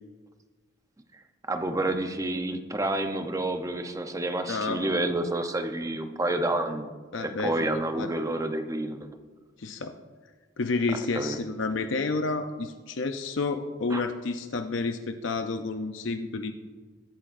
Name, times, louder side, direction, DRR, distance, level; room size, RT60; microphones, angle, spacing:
voice 1, 1.5-6.9 7.2-9.1 11.1-11.4 13.9-14.0, right 1 dB, 15° right, 6 dB, 0.7 m, -29 dB
voice 2, 4.5-5.0 7.1-8.1 9.6-10.0 10.6-16.5, left 3 dB, 65° left, 7 dB, 0.6 m, -30 dB
21.0 x 8.7 x 2.6 m, 1.4 s
head